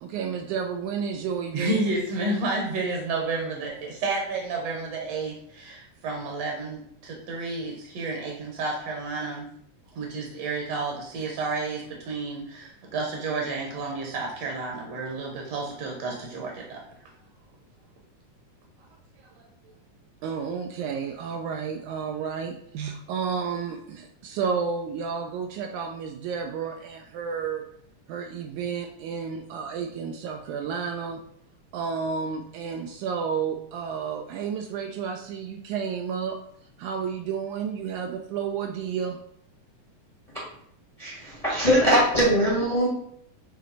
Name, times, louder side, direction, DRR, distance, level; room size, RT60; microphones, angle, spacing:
voice 1, 0.0-1.8 20.2-27.6 28.1-31.2 31.7-36.4 36.8-39.2, right 6 dB, 80° right, 3 dB, 1.9 m, -31 dB
voice 2, 1.5-9.5 9.9-16.8, right 3 dB, 65° right, 0 dB, 2.0 m, -31 dB
voice 3, 41.0-42.9, equal, 25° left, -4 dB, 0.7 m, -21 dB
9.0 x 3.1 x 4.1 m, 0.69 s
omnidirectional pair, 3.6 m